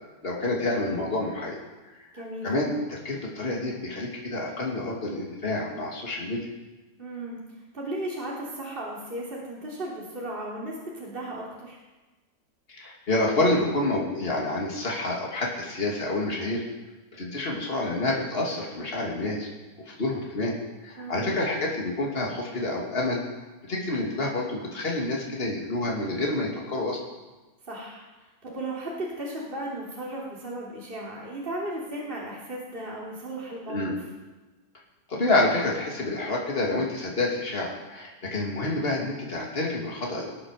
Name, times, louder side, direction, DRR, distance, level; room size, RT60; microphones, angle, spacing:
voice 1, 0.2-1.6 2.4-6.5 12.7-16.6 17.1-19.5 19.9-20.5 20.8-23.2 23.7-27.0 33.7-34.0 35.1-40.3, left 2 dB, 35° left, -2 dB, 2.7 m, -28 dB
voice 2, 2.1-2.5 7.0-7.4 7.7-11.8 21.0-21.4 27.6-28.0 28.4-34.0, right 1 dB, 35° right, -5 dB, 3.2 m, -35 dB
19.0 x 8.7 x 6.6 m, 1.2 s
omnidirectional pair, 1.7 m